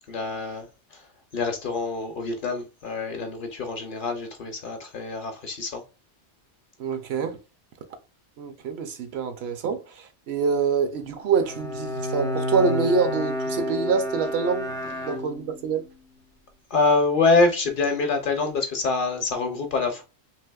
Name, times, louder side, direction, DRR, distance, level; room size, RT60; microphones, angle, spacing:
voice 1, 0.1-1.1 1.3-5.8 16.7-20.0, left 3 dB, 55° left, 0.7 m, -25 dB
voice 2, 6.8-7.4 8.4-14.7 15.0-15.9, right 5 dB, 70° right, 0.8 m, -26 dB
Bowed string instrument, 11.4-15.8, left 1 dB, 5° left, 0.3 m, -30 dB
3.3 x 2.9 x 2.2 m
omnidirectional pair, 1.2 m